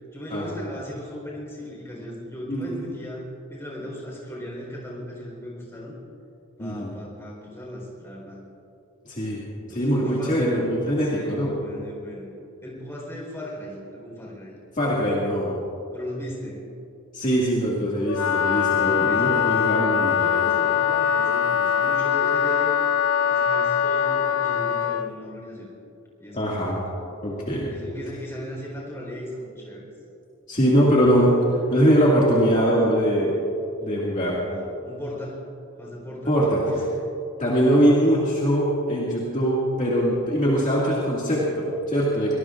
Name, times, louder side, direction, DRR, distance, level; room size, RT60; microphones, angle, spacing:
voice 1, 0.1-6.0 6.6-8.4 9.7-10.4 11.0-12.3 12.6-14.6 15.9-16.7 18.5-19.7 20.0-22.7 23.3-25.7 26.2-26.9 27.7-29.9 34.2-35.4 35.8-37.0, left 1 dB, 10° left, -3 dB, 4.1 m, -37 dB
voice 2, 2.5-2.8 6.6-6.9 9.1-9.4 9.7-11.5 14.7-15.5 17.1-20.2 26.3-26.8 27.2-27.7 30.5-33.3 33.8-34.3 36.2-36.6 37.4-42.4, equal, 35° left, -6 dB, 2.1 m, -22 dB
Wind instrument woodwind instrument, 18.0-25.1, left 8 dB, 75° left, 0.4 m, -22 dB
24.0 x 19.0 x 2.5 m, 2.8 s
head